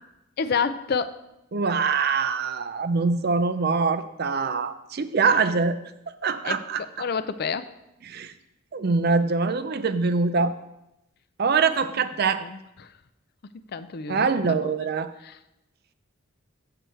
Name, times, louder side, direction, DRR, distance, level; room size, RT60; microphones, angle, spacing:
voice 1, 0.4-1.2 6.4-6.6 7.0-7.7 12.4-12.9 13.7-14.5 15.2-15.4, left 5 dB, 50° left, 12 dB, 0.4 m, -29 dB
voice 2, 1.5-5.8 6.1-6.8 8.1-8.3 8.7-10.5 11.4-12.4 14.1-15.1, right 4 dB, 50° right, 11 dB, 0.5 m, -24 dB
7.7 x 6.8 x 4.5 m, 0.87 s
head